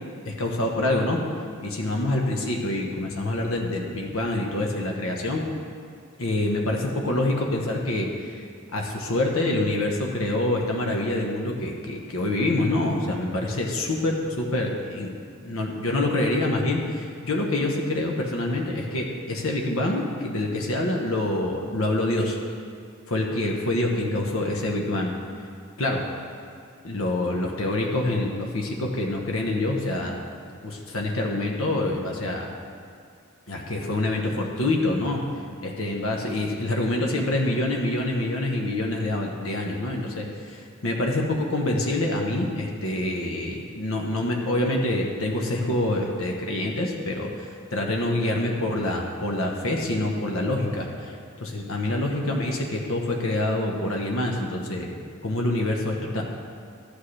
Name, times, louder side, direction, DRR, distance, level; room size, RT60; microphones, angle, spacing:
voice 1, 0.2-1.2 1.6-5.4 6.2-8.4 8.7-15.1 15.4-22.4 23.1-25.1 25.8-26.0 26.8-30.2 30.6-32.5 33.5-35.2 35.6-54.9 55.2-56.2, left 1 dB, 75° left, 0 dB, 1.0 m, -26 dB
13.0 x 8.3 x 3.3 m, 2.2 s
head